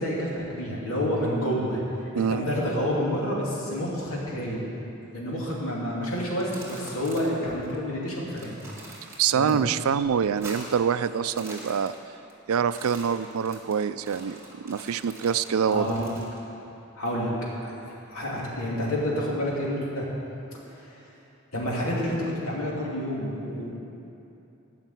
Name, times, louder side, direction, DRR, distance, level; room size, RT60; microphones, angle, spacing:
voice 1, 0.0-1.8 2.2-4.6 5.1-8.5 9.3-9.6 15.7-16.0 17.0-17.3 17.6-17.7 18.1-20.1 20.8-20.9 21.5-23.8, equal, 80° left, -5 dB, 2.9 m, -29 dB
sound 1, 6.2-7.5 7.7-7.8 8.2-9.5 9.8-10.9 11.2-12.3 12.6-16.4, right 2 dB, 10° right, 1.7 m, -44 dB
voice 2, 9.2-11.9 12.5-15.9, right 7 dB, 80° right, 13 dB, 0.4 m, -25 dB
13.5 x 5.8 x 9.1 m, 2.8 s
head